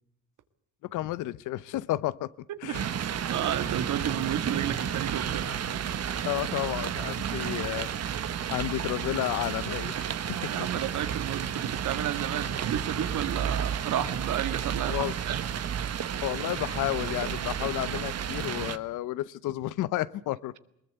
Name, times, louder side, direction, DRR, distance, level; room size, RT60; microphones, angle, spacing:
voice 1, 0.8-2.9 5.5-5.6 6.2-7.9 8.5-10.5 14.9-15.1 16.2-20.6, left 15 dB, 90° left, 0.8 m, -32 dB
voice 2, 2.6-5.5 10.3-15.4, right 10 dB, 75° right, 1.8 m, -32 dB
sound 1, 2.7-18.8, right 8 dB, 55° right, 1.3 m, -32 dB
21.0 x 20.5 x 8.2 m
cardioid pair, 90°, 30 cm